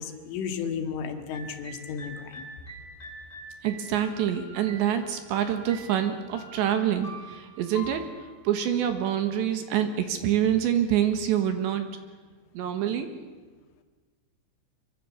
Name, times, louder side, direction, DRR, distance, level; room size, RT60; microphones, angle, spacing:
voice 1, 0.0-2.5, left 6 dB, 75° left, 6 dB, 4.2 m, -34 dB
sound 1, 1.3-9.3, equal, 15° left, 4.4 m, -45 dB
voice 2, 3.6-8.0 8.5-11.9 12.6-13.1, right 10 dB, 70° right, 7 dB, 3.5 m, -26 dB
25.0 x 23.5 x 7.2 m, 1.3 s
omnidirectional pair, 5.8 m